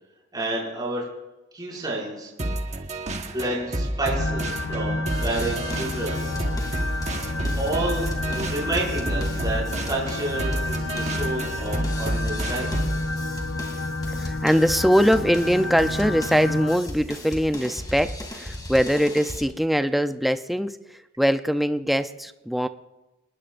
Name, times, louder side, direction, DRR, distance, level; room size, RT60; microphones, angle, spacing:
voice 1, 0.3-1.0 1.5-2.3 3.3-6.5 7.2-12.9, right 2 dB, 20° right, -5 dB, 6.2 m, -30 dB
sound 1, 2.4-13.1, right 1 dB, 35° right, 1.3 m, -30 dB
sound 2, 4.2-16.8, left 2 dB, 85° left, 0.9 m, -30 dB
sound 3, 5.1-19.4, left 1 dB, 20° left, 2.6 m, -37 dB
voice 2, 14.1-22.7, equal, ahead, 9 dB, 0.6 m, -22 dB
27.5 x 20.0 x 2.6 m, 1.0 s
head